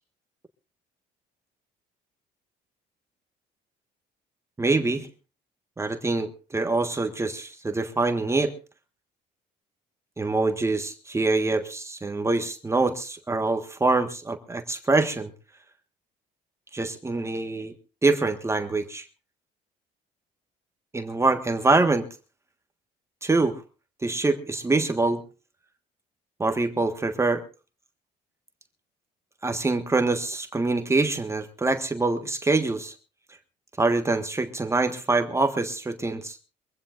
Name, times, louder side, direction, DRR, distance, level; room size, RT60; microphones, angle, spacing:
voice 1, 4.6-5.1 5.8-8.5 10.2-15.3 16.7-17.7 18.0-19.0 20.9-22.0 23.2-23.6 24.0-25.2 26.4-27.4 29.4-32.9 33.8-36.4, right 3 dB, 15° right, 6 dB, 1.5 m, -25 dB
23.5 x 16.0 x 2.5 m, 0.32 s
cardioid pair, 110°, 17 cm